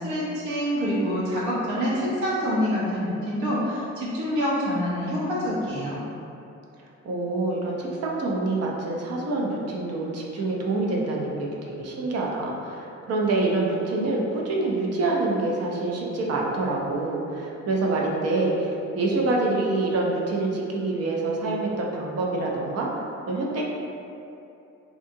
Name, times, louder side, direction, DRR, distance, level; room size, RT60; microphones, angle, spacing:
voice 1, 0.0-6.1, equal, 70° right, -8 dB, 0.9 m, -26 dB
voice 2, 7.0-22.9 23.3-23.6, right 2 dB, 55° right, -2 dB, 0.6 m, -26 dB
2.7 x 2.2 x 2.6 m, 2.7 s
cardioid pair, 90°, 30 cm